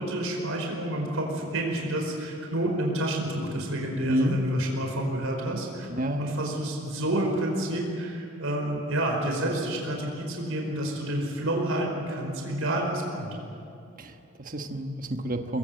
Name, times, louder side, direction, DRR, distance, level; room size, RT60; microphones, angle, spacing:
voice 1, 0.0-5.9 6.2-13.3, right 1 dB, 70° right, 1 dB, 4.9 m, -29 dB
voice 2, 4.0-4.4 5.9-6.4 14.0-15.6, right 1 dB, 40° right, 5 dB, 1.3 m, -30 dB
23.5 x 22.0 x 7.8 m, 2.7 s
head